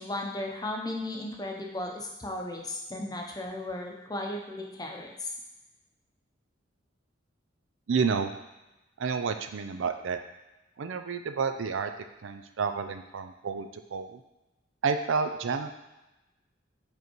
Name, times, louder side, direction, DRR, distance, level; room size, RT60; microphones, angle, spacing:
voice 1, 0.0-5.3, left 1 dB, 20° left, 1 dB, 0.8 m, -35 dB
voice 2, 7.9-8.4 9.0-10.2 10.8-11.9 12.2-14.2 14.8-15.8, right 5 dB, 85° right, 8 dB, 0.5 m, -30 dB
5.4 x 4.0 x 4.5 m, 1.0 s
head